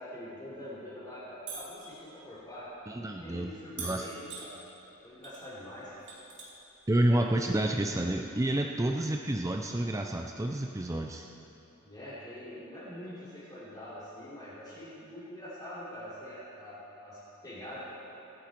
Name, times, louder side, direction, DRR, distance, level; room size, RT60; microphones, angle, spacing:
voice 1, 0.0-2.7 3.2-4.6 5.0-5.9 11.8-17.8, left 1 dB, 20° left, -12 dB, 3.6 m, -44 dB
sound 1, 1.5-1.9 3.8-4.5 5.2-5.4 5.8-6.7 7.9-8.0, right 5 dB, 60° right, 3.0 m, -42 dB
voice 2, 2.9-3.5 3.8-4.1 6.9-11.3, right 1 dB, 15° right, 2 dB, 0.5 m, -29 dB
25.0 x 9.4 x 4.6 m, 2.9 s
head